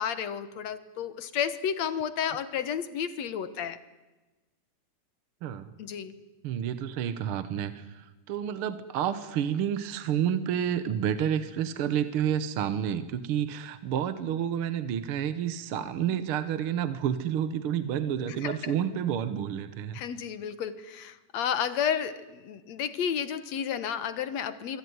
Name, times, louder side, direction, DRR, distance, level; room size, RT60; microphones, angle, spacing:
voice 1, 0.0-3.8 5.8-6.1 18.4-18.7 19.9-24.8, left 8 dB, 65° left, 13 dB, 2.3 m, -32 dB
voice 2, 5.4-5.7 6.4-20.0, right 9 dB, 60° right, 12 dB, 1.6 m, -30 dB
25.0 x 24.5 x 9.5 m, 1.1 s
omnidirectional pair, 3.5 m